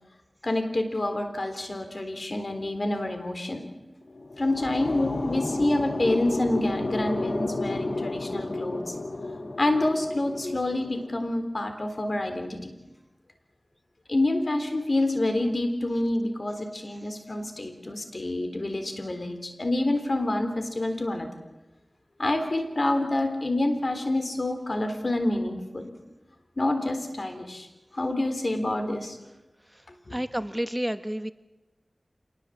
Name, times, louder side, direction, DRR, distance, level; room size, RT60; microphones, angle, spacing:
voice 1, 0.4-3.7 4.4-8.9 9.6-12.7 14.1-21.3 22.2-25.9 26.6-27.7 27.9-29.2 30.1-30.2, left 1 dB, 55° left, 7 dB, 3.7 m, -27 dB
sound 1, 4.0-11.2, left 2 dB, 75° left, 2.2 m, -32 dB
voice 2, 30.1-31.3, equal, 10° right, 11 dB, 0.9 m, -30 dB
26.5 x 19.5 x 7.7 m, 1.0 s
wide cardioid pair, 50°, 0 cm